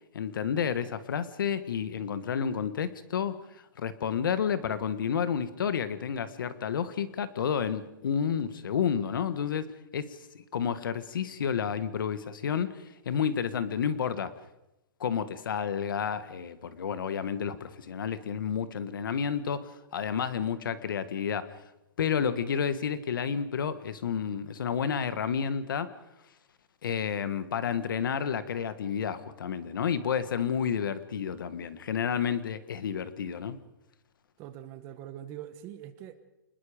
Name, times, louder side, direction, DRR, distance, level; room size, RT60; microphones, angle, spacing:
voice 1, 0.1-3.4 3.8-14.3 15.0-21.5 22.0-25.9 26.8-33.6, left 7 dB, 65° left, 13 dB, 1.6 m, -30 dB
voice 2, 34.4-36.2, right 11 dB, 20° right, 11 dB, 1.0 m, -43 dB
27.5 x 20.5 x 5.1 m, 0.91 s
hypercardioid pair, 170°, 12 cm